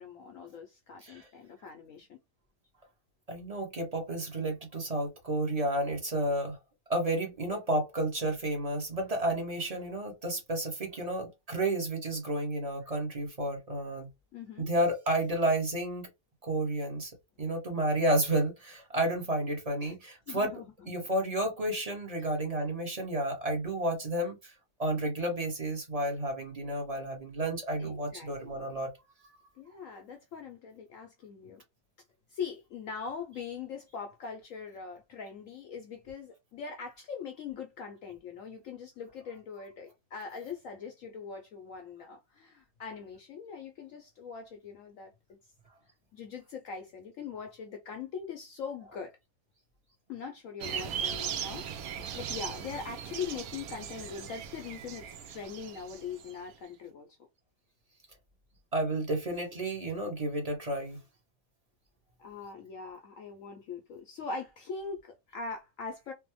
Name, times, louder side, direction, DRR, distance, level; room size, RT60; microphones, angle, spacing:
voice 1, 0.0-2.2 14.3-14.7 19.8-19.9 20.3-20.9 22.2-22.3 27.8-28.7 29.6-31.6 32.3-45.4 46.1-49.2 50.1-51.6 52.1-57.1 62.2-66.1, left 5 dB, 70° left, 0.8 m, -42 dB
voice 2, 3.3-6.6 6.9-14.1 14.6-16.1 16.4-17.1 17.4-24.5 24.8-28.9 58.7-61.0, right 1 dB, 30° right, 0.7 m, -31 dB
Full-Chorus, 50.6-56.3, right 8 dB, 70° right, 0.9 m, -38 dB
3.3 x 2.1 x 3.0 m
omnidirectional pair, 1.8 m